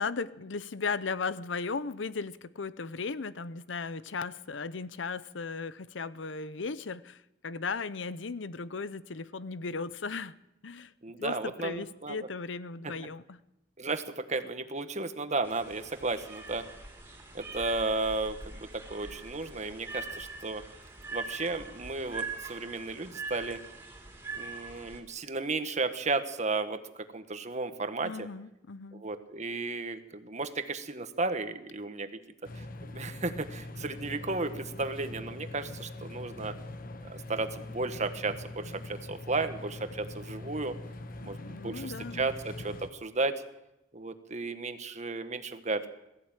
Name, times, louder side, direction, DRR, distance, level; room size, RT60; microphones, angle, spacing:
voice 1, 0.0-10.3 10.6-10.9 11.2-13.4 28.0-29.0 41.2-42.3, left 4 dB, 90° left, 16 dB, 0.8 m, -36 dB
voice 2, 11.0-12.2 12.8-12.9 13.8-16.6 17.3-20.6 21.1-23.6 24.3-26.8 27.1-28.3 28.9-32.1 32.5-36.5 37.0-40.7 41.2-41.4 41.6-43.4 43.9-45.9, right 3 dB, 40° right, 9 dB, 1.5 m, -34 dB
sound 1, 15.4-25.0, right 3 dB, 15° right, 3.8 m, -43 dB
sound 2, 32.4-42.9, left 2 dB, 50° left, 1.1 m, -43 dB
21.0 x 14.5 x 9.1 m, 0.89 s
head